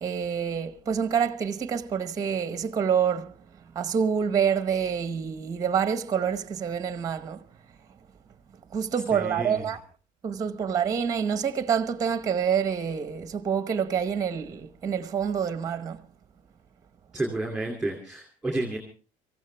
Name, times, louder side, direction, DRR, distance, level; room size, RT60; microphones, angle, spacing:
voice 1, 0.0-3.3 3.7-7.4 8.7-9.8 10.2-16.0, right 7 dB, 20° right, 0.9 m, -27 dB
voice 2, 9.1-9.6 17.1-18.8, right 2 dB, ahead, 2.6 m, -31 dB
25.5 x 15.0 x 3.3 m
cardioid pair, 165°, 17 cm